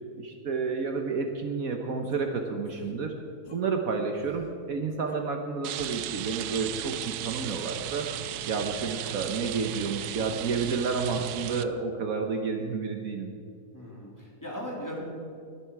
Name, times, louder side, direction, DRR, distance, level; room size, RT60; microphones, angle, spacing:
voice 1, 0.2-3.1 3.5-8.1 8.5-13.3, right 4 dB, 60° right, 3 dB, 1.4 m, -30 dB
sound 1, 2.1-2.2 2.7-2.9 3.4-3.6 4.2-4.5 5.1-5.2 5.8-6.2 6.7-6.8 7.5-7.8, left 3 dB, 45° left, 1.8 m, -51 dB
Rain, 5.6-11.6, right 12 dB, 80° right, 1.1 m, -35 dB
voice 2, 13.7-15.0, equal, 10° left, -4 dB, 3.5 m, -38 dB
21.5 x 10.5 x 4.7 m, 2.4 s
omnidirectional pair, 1.7 m